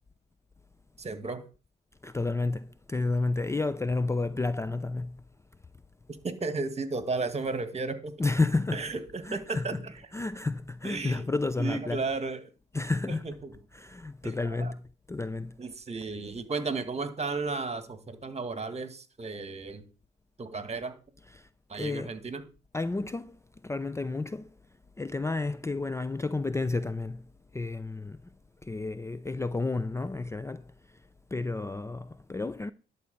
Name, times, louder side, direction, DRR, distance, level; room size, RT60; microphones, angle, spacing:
voice 1, 1.0-1.4 6.2-8.1 8.7-9.7 10.8-11.3 11.6-12.4 14.2-14.7 15.6-19.8 20.4-20.9 21.7-22.4, right 3 dB, 35° right, 2.0 m, -33 dB
voice 2, 2.0-5.2 8.2-8.9 9.2-9.8 10.1-12.1 12.7-13.3 13.7-15.6 21.2-22.2 22.7-24.5 25.0-28.3 28.6-32.7, left 3 dB, 15° left, 0.5 m, -31 dB
11.5 x 4.7 x 8.4 m
cardioid pair, 90°, 20 cm